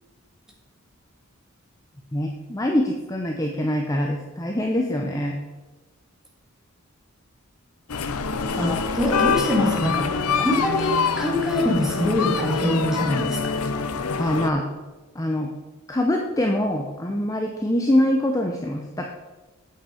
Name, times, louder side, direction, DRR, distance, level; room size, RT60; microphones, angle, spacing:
voice 1, 2.1-5.4 14.2-14.6 15.1-15.5 15.9-19.1, left 1 dB, 15° left, 2 dB, 0.6 m, -24 dB
sound 1, 7.9-14.5, left 5 dB, 90° left, 0.7 m, -25 dB
voice 2, 8.5-13.5, left 1 dB, ahead, -2 dB, 1.8 m, -24 dB
8.5 x 7.8 x 4.9 m, 1.2 s
head